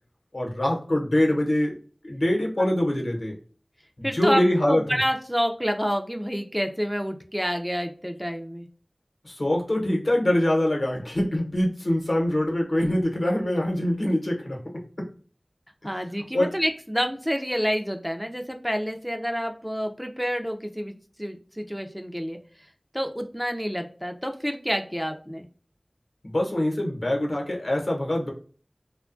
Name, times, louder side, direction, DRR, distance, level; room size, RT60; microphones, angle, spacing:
voice 1, 0.3-1.8 2.0-3.3 4.0-4.8 9.2-15.1 16.3-16.5 26.2-28.3, left 1 dB, 80° left, 0 dB, 0.9 m, -24 dB
voice 2, 4.0-8.7 15.8-22.4 22.9-25.5, equal, 5° right, 5 dB, 0.4 m, -28 dB
2.7 x 2.2 x 2.5 m, 0.40 s
wide cardioid pair, 45°, 0 cm